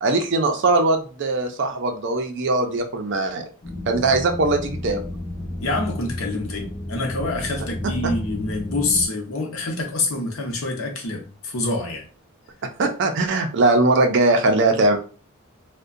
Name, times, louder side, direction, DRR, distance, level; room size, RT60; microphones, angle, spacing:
voice 1, 0.0-3.4 3.9-5.0 12.8-15.0, right 2 dB, 55° right, 0.4 m, -20 dB
sound 1, 3.6-9.1, left 1 dB, 30° left, 0.5 m, -32 dB
voice 2, 5.6-12.0, left 2 dB, 65° left, 0.7 m, -26 dB
2.6 x 2.1 x 2.5 m
head